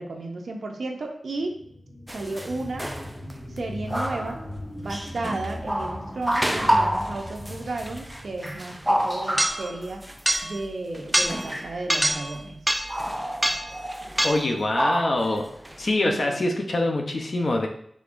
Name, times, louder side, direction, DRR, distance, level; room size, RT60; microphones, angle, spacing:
voice 1, 0.0-1.6 2.1-2.9 3.5-4.4 4.8-10.1 10.4-12.6 16.0-16.5, right 2 dB, 75° right, 2 dB, 0.6 m, -33 dB
sound 1, 1.3-10.4 10.9-11.0, left 1 dB, 85° left, 1.6 m, -40 dB
sound 2, 2.1-2.5 2.8-3.3 3.9-4.5 4.9-10.6 10.9-12.4 12.7-15.4 15.6-15.8, right 1 dB, 10° right, 0.4 m, -26 dB
voice 2, 14.2-15.4 15.8-17.7, left 2 dB, 55° left, 3 dB, 0.6 m, -24 dB
5.0 x 3.4 x 2.5 m, 0.67 s
wide cardioid pair, 115°, 0 cm